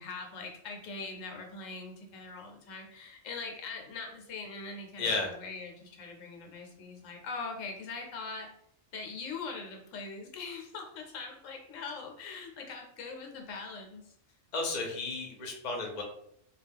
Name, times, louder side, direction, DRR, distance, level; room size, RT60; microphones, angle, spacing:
voice 1, 0.0-8.5 8.9-14.0, left 4 dB, 85° left, 3 dB, 1.0 m, -42 dB
voice 2, 5.0-5.3 14.5-16.0, left 3 dB, 45° left, 1 dB, 0.6 m, -33 dB
2.3 x 2.3 x 3.4 m, 0.70 s
omnidirectional pair, 1.3 m